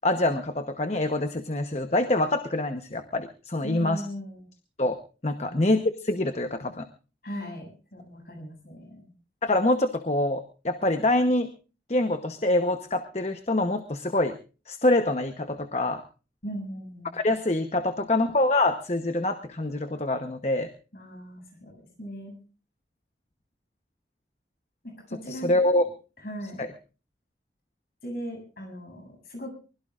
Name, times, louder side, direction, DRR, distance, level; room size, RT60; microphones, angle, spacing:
voice 1, 0.0-4.0 4.8-5.0 5.2-6.9 9.4-11.5 11.9-14.3 14.7-16.0 17.1-20.7 25.3-25.8 26.6-26.7, left 2 dB, 35° left, 7 dB, 1.0 m, -25 dB
voice 2, 3.6-4.5 5.4-5.6 7.2-9.1 16.4-17.1 20.9-22.4 24.8-25.5 26.2-26.6 28.0-29.5, equal, 55° left, 3 dB, 7.9 m, -38 dB
24.0 x 21.0 x 2.5 m, 0.36 s
head